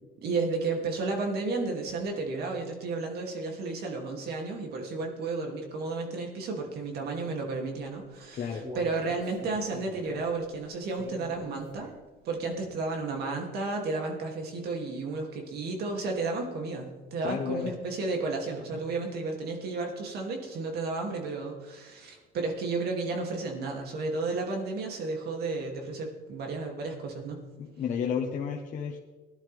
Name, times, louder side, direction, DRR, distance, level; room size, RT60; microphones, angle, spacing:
voice 1, 0.2-11.9 12.2-27.4, right 3 dB, 70° right, 2 dB, 2.8 m, -32 dB
Human voice, 8.1-12.2 12.6-12.7 13.1-13.2, equal, 15° right, 4.4 m, -45 dB
voice 2, 8.3-8.6 17.2-17.7 27.6-29.0, left 7 dB, 50° left, -1 dB, 1.3 m, -32 dB
17.5 x 11.0 x 3.5 m, 1.3 s
cardioid pair, 110°, 17 cm